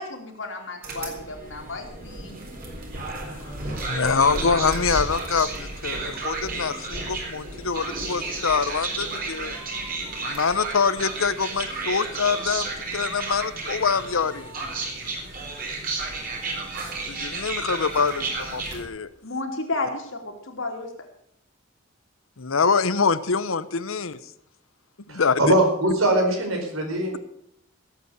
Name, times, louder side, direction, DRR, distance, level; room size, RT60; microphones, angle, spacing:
voice 1, 0.0-2.4 19.2-21.1, left 2 dB, 70° left, 2 dB, 3.2 m, -32 dB
sound 1, 0.8-18.8, right 3 dB, 45° right, 4.0 m, -32 dB
voice 2, 3.7-9.5 10.3-14.5 17.1-19.1 22.4-24.2 25.1-25.4, left 5 dB, 85° left, 15 dB, 0.9 m, -25 dB
voice 3, 25.1-27.1, right 1 dB, 85° right, 3 dB, 4.7 m, -22 dB
16.5 x 8.4 x 6.6 m, 0.74 s
head